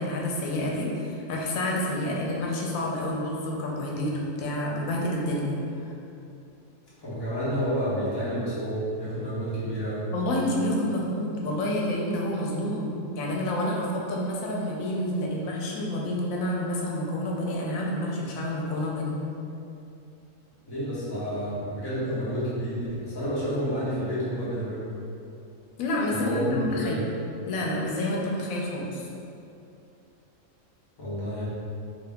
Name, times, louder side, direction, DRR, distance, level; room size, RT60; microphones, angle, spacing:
voice 1, 0.0-5.9 10.1-12.9 13.1-19.2 25.8-27.0 27.5-29.1, left 1 dB, 90° left, -2 dB, 1.0 m, -29 dB
voice 2, 7.0-10.1 20.6-24.9 26.1-27.0 31.0-31.4, equal, 20° left, -11 dB, 0.8 m, -30 dB
2.8 x 2.6 x 3.3 m, 2.7 s
omnidirectional pair, 1.4 m